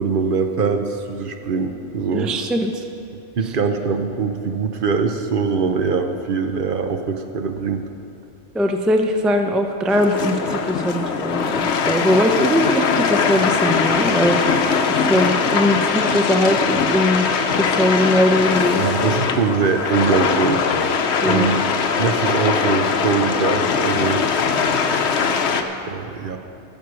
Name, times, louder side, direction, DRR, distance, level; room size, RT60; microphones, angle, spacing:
voice 1, 0.0-2.3 3.4-7.8 18.8-20.6 21.2-21.7 22.0-24.2 25.8-26.4, right 5 dB, 55° right, 6 dB, 0.8 m, -22 dB
voice 2, 2.1-2.8 8.5-14.4 14.9-17.3 17.6-18.9 21.2-21.5, equal, ahead, 5 dB, 0.4 m, -20 dB
sound 1, 9.9-25.6, left 5 dB, 75° left, 1.0 m, -21 dB
13.0 x 7.3 x 6.2 m, 2.8 s
omnidirectional pair, 1.2 m